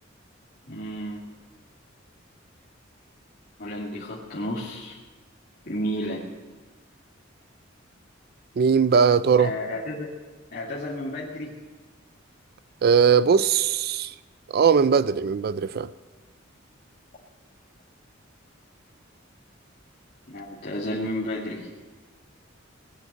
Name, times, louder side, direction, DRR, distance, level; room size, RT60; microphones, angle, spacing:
voice 1, 0.7-1.2 3.6-5.0 5.7-6.2 9.4-10.1 10.5-11.5 20.3-21.7, equal, 50° left, -7 dB, 2.4 m, -32 dB
voice 2, 8.6-9.5 12.8-14.1 14.5-15.9, right 6 dB, 50° right, 16 dB, 0.4 m, -19 dB
19.5 x 7.2 x 7.9 m, 1.3 s
head